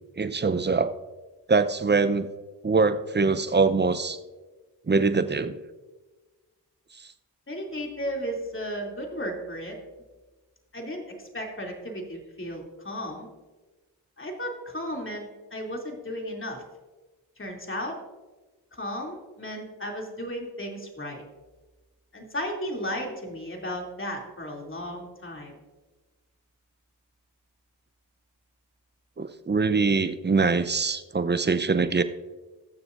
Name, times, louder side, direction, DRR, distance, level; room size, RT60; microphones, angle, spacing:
voice 1, 0.2-0.9 1.5-2.3 2.6-4.2 4.9-5.6 29.2-32.0, right 4 dB, 25° right, 12 dB, 0.7 m, -23 dB
voice 2, 7.5-9.8 10.7-13.3 14.2-16.6 17.4-18.0 18.7-21.2 22.1-25.5, equal, 30° left, 1 dB, 2.9 m, -34 dB
20.5 x 6.9 x 2.6 m, 1.2 s
supercardioid pair, 45°, 42 cm